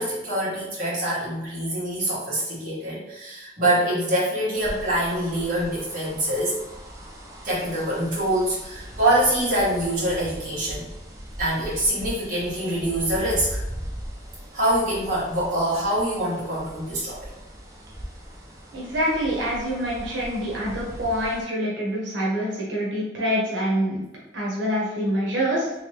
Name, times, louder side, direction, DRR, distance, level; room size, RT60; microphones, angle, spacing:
voice 1, 0.0-6.6 7.4-10.9 11.4-13.6 14.5-17.2, right 1 dB, 45° right, -8 dB, 1.5 m, -25 dB
sound 1, 4.5-21.4, equal, 20° right, 0.5 m, -39 dB
voice 2, 18.7-24.0 24.3-25.7, equal, 90° right, -5 dB, 1.0 m, -26 dB
3.3 x 3.3 x 3.0 m, 0.95 s
head